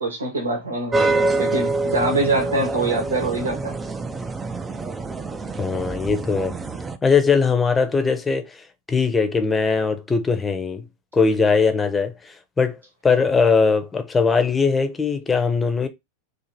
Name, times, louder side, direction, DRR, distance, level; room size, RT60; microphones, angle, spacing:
voice 1, 0.0-1.0 1.4-3.7, right 2 dB, 80° right, 1.1 m, -24 dB
sound 1, 0.9-7.0, right 3 dB, 15° right, 0.5 m, -26 dB
voice 2, 5.6-6.6 7.0-10.9 11.1-12.8 13.0-15.9, left 5 dB, 15° left, 0.7 m, -20 dB
2.8 x 2.8 x 4.0 m
figure-of-eight pair, 90°, 0 cm